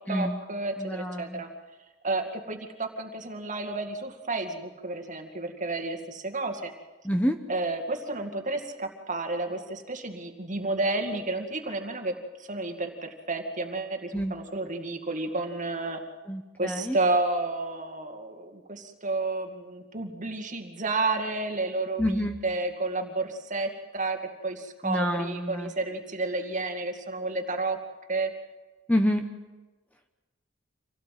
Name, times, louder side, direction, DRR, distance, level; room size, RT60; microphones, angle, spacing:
voice 1, 0.1-1.5 2.0-6.7 7.5-12.1 12.5-16.0 16.6-27.8 28.1-28.3, right 2 dB, 40° right, 5 dB, 2.2 m, -31 dB
voice 2, 0.8-1.4 7.0-7.4 14.1-14.3 16.3-17.0 22.0-22.4 24.8-25.7 28.9-29.2, equal, 10° left, 5 dB, 1.0 m, -27 dB
26.5 x 17.0 x 7.6 m, 1.2 s
head